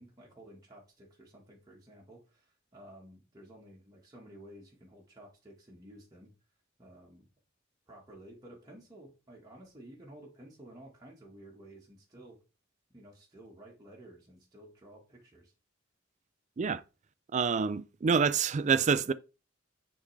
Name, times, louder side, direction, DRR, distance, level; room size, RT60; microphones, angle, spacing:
voice 1, 0.0-6.3 6.8-7.3 7.9-12.4 12.9-15.5, right 1 dB, 20° right, 1.5 m, -53 dB
voice 2, 17.3-19.1, right 6 dB, 35° right, 0.4 m, -27 dB
9.7 x 3.6 x 3.3 m
head